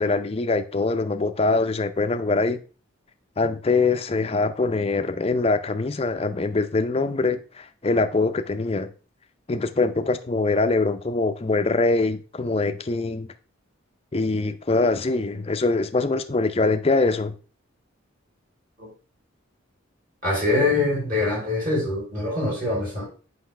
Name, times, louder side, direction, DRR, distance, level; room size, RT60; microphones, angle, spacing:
voice 1, 0.0-2.6 3.4-8.9 9.5-13.3 14.1-17.3, left 3 dB, 30° left, 0.5 m, -23 dB
voice 2, 20.2-23.1, left 2 dB, 40° right, 3.8 m, -24 dB
7.7 x 5.5 x 3.3 m
head